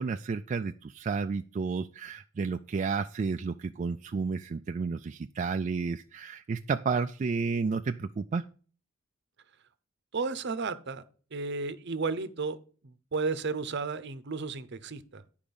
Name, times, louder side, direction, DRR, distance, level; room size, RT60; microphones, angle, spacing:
voice 1, 0.0-8.5, right 4 dB, 35° right, 7 dB, 0.3 m, -31 dB
voice 2, 10.1-11.0 11.3-12.6 12.8-15.2, right 4 dB, 60° right, 13 dB, 0.7 m, -33 dB
10.5 x 5.0 x 5.3 m, 0.41 s
head